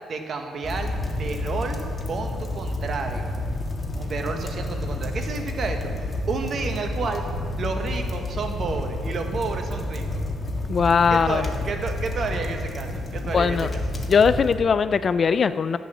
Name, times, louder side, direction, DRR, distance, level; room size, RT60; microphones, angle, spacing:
voice 1, 0.1-3.3 4.0-7.2 7.6-10.2 11.1-13.8, right 4 dB, 50° right, 5 dB, 1.3 m, -31 dB
sound 1, 0.6-14.6, left 1 dB, 25° left, 1.5 m, -30 dB
voice 2, 10.7-11.5 13.3-13.7 14.1-15.8, left 6 dB, 45° left, 14 dB, 0.4 m, -20 dB
11.0 x 8.4 x 6.1 m, 2.2 s
cardioid pair, 90°, 0 cm